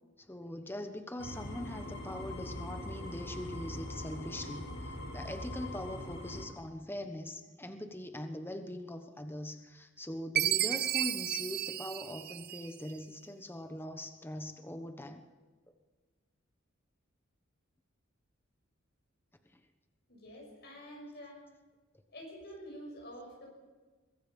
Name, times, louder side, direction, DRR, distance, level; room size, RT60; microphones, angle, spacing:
voice 1, 0.3-15.2, left 1 dB, 10° left, 6 dB, 1.2 m, -42 dB
sound 1, 1.2-6.4, left 1 dB, 85° left, 4.1 m, -42 dB
Chime, 10.4-12.9, right 12 dB, 50° right, 0.6 m, -32 dB
voice 2, 20.1-21.4 22.1-23.5, equal, 55° left, 0 dB, 6.0 m, -48 dB
23.0 x 21.5 x 5.5 m, 1.3 s
head